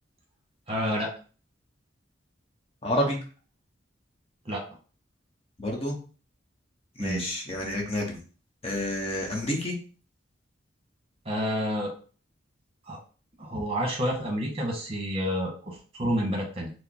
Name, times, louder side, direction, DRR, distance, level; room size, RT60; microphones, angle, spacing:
voice 1, 0.7-1.1 4.4-4.6 7.0-7.2 11.2-11.9 12.9-13.0 13.4-16.7, equal, 30° right, -1 dB, 1.3 m, -29 dB
voice 2, 2.8-3.2 5.6-5.9 7.0-8.2 8.6-9.7, left 1 dB, 30° left, 0 dB, 0.9 m, -29 dB
4.8 x 2.1 x 4.3 m, 0.39 s
head